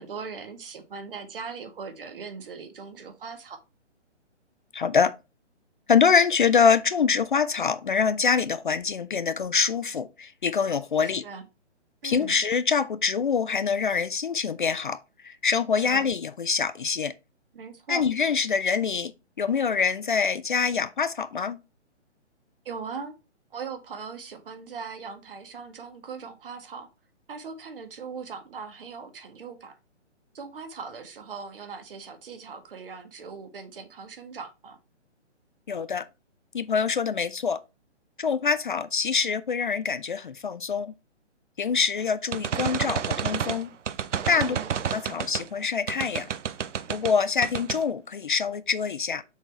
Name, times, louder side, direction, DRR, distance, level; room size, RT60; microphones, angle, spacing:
voice 1, 0.0-3.6 11.2-11.4 12.0-12.4 15.8-16.0 17.5-18.0 22.6-23.1 23.5-26.9 27.3-29.7 30.3-34.8 44.4-44.8, right 5 dB, 50° right, 1.5 m, -39 dB
voice 2, 4.7-5.1 5.9-11.2 12.0-17.1 17.9-19.1 19.4-21.6 35.7-36.1 36.5-37.6 38.2-40.9 41.6-43.7 44.3-44.6 44.9-46.3 46.9-49.2, left 6 dB, 45° left, 0.4 m, -25 dB
sound 1, 42.3-45.5 45.9-47.2 47.4-47.8, right 8 dB, 80° right, 0.7 m, -30 dB
6.2 x 4.1 x 4.5 m
hypercardioid pair, 160°, 36 cm